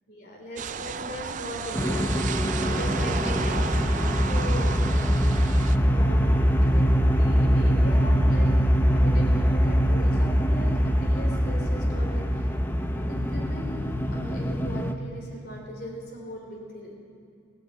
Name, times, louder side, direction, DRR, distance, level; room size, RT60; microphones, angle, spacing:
voice 1, 0.1-2.3 2.6-3.8 4.3-4.8 5.8-8.6 8.9-12.5 12.9-16.9, equal, 50° left, 0 dB, 3.2 m, -39 dB
sound 1, 0.6-5.8, right 6 dB, 40° right, 0.3 m, -33 dB
sound 2, 1.7-14.9, equal, 10° left, 0.5 m, -23 dB
18.0 x 6.9 x 7.9 m, 2.5 s
head